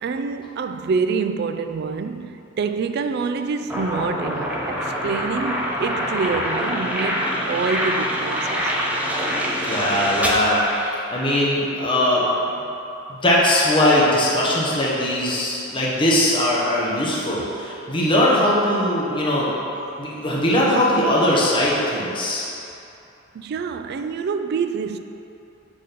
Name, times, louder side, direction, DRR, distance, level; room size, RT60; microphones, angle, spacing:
voice 1, 0.0-8.7 19.9-20.0 23.3-25.0, right 5 dB, 55° right, 0.3 m, -26 dB
sound 1, 3.7-11.5, equal, 5° right, 0.7 m, -25 dB
voice 2, 9.6-10.6 11.1-12.4 13.1-19.5 20.0-22.5, left 1 dB, 25° left, 1.2 m, -20 dB
6.6 x 4.0 x 5.2 m
head